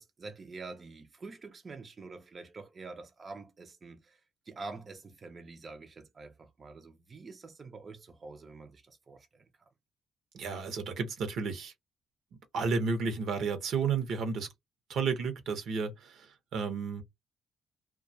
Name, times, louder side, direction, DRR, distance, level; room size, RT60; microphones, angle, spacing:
voice 1, 0.0-9.7, right 3 dB, 35° right, 0.4 m, -47 dB
voice 2, 10.3-11.7 12.5-14.5 14.9-17.0, right 5 dB, 75° right, 0.7 m, -32 dB
2.2 x 2.2 x 2.5 m
cardioid pair, 90°, 0 cm